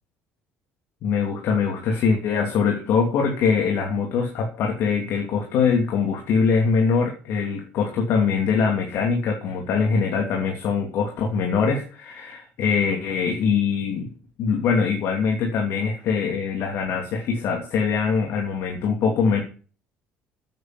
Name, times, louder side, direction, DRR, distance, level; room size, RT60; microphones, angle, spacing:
voice 1, 1.0-14.1 14.4-19.4, left 5 dB, 65° left, 1 dB, 3.0 m, -23 dB
9.3 x 8.7 x 7.9 m, 0.38 s
cardioid pair, 105°, 5 cm